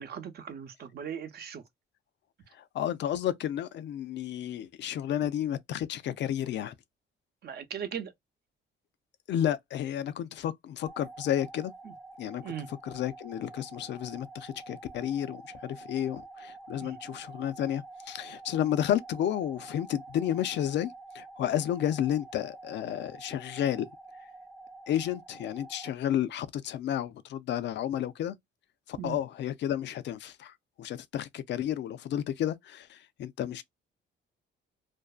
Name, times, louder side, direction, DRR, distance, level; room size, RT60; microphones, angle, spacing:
voice 1, 0.0-1.6 5.2-5.3 7.4-8.1 11.8-11.9 12.4-12.7 16.8-17.0 28.9-29.2, right 8 dB, 55° right, 0.6 m, -39 dB
voice 2, 2.6-6.7 9.3-11.7 12.2-12.4 12.7-23.9 24.9-28.4 28.9-33.6, left 11 dB, 65° left, 0.4 m, -32 dB
sound 1, 10.9-25.9, right 3 dB, ahead, 0.6 m, -48 dB
2.5 x 2.2 x 2.3 m
cardioid pair, 90°, 20 cm